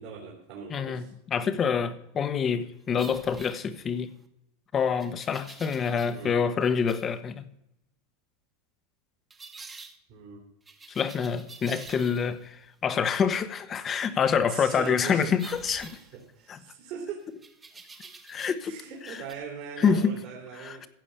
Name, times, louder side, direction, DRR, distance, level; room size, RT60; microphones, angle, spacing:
voice 1, 0.0-1.1 6.1-6.4 10.1-10.5 14.5-15.4 15.9-17.2 18.6-20.9, right 7 dB, 55° right, 3.1 m, -40 dB
voice 2, 0.7-4.1 4.7-7.5 10.9-16.0 16.5-16.6 18.3-18.8 19.0-19.2 19.8-20.2 20.6-20.9, left 6 dB, 30° left, 1.1 m, -27 dB
sound 1, 2.9-4.2 5.0-6.3 6.6-7.1 9.3-10.0 10.7-12.5 15.4-16.7 17.4-18.7 19.0-19.3, right 4 dB, 20° right, 1.5 m, -48 dB
15.0 x 5.1 x 8.4 m
hypercardioid pair, 115°, 0 cm